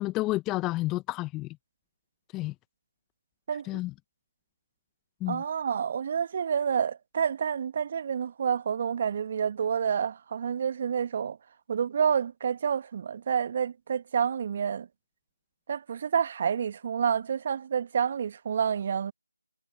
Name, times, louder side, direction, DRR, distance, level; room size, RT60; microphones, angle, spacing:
voice 1, 0.0-1.6 2.3-2.5 3.7-3.9 5.2-5.4, left 18 dB, 10° left, 1.4 m, -30 dB
voice 2, 5.3-11.4 11.7-14.9 15.7-19.1, right 7 dB, 25° right, 1.4 m, -28 dB
figure-of-eight pair, 160°, 0 cm